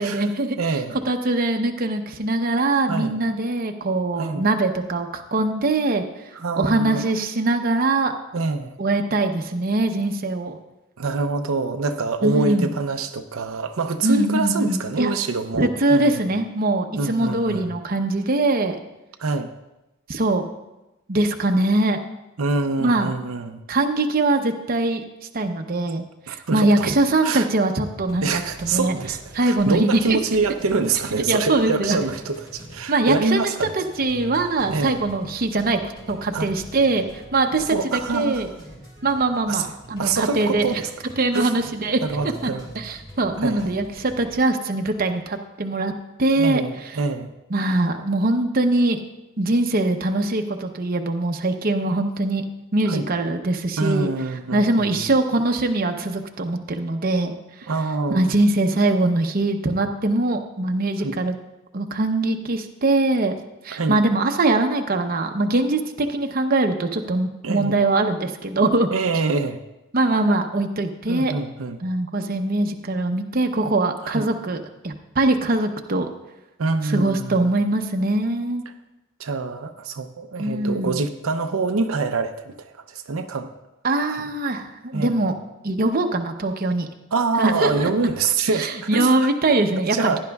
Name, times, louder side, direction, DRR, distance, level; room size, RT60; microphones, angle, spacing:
voice 1, 0.0-0.6 1.1-6.0 6.6-8.1 8.8-10.6 12.2-12.7 14.0-15.1 15.5-18.8 20.1-20.5 21.1-22.0 22.8-23.1 23.7-25.0 25.3-28.9 29.3-30.0 31.3-32.0 32.9-35.8 36.1-37.0 37.3-38.5 39.0-40.8 41.2-42.0 42.4-42.5 42.8-45.9 46.2-46.6 47.5-49.0 49.4-54.1 54.5-57.3 58.1-61.3 61.7-63.4 63.6-68.9 69.9-71.3 71.8-76.1 76.9-78.6 80.4-81.0 83.8-85.3 85.6-86.9 87.4-87.9 88.6-90.2, right 2 dB, 45° right, 5 dB, 0.8 m, -22 dB
voice 2, 0.6-1.0 2.9-3.2 4.2-4.5 6.3-7.1 8.3-8.7 11.0-16.3 17.0-17.7 19.2-19.5 22.4-23.6 26.3-26.9 27.2-27.5 28.2-33.7 34.7-35.0 36.3-36.5 37.7-38.5 39.5-39.7 40.0-40.9 41.3-41.5 42.0-42.7 43.4-43.7 46.3-47.3 52.9-53.1 53.8-55.0 57.7-58.4 61.0-61.2 63.7-64.0 67.4-67.8 68.9-69.6 71.1-71.8 74.0-74.3 76.6-77.5 79.2-83.5 84.0-84.3 84.9-85.3 87.1-89.3 89.9-90.2, right 4 dB, 90° right, 6 dB, 0.6 m, -25 dB
sound 1, 28.0-44.3, equal, 25° left, 3.9 m, -43 dB
16.0 x 10.5 x 2.3 m, 0.98 s
head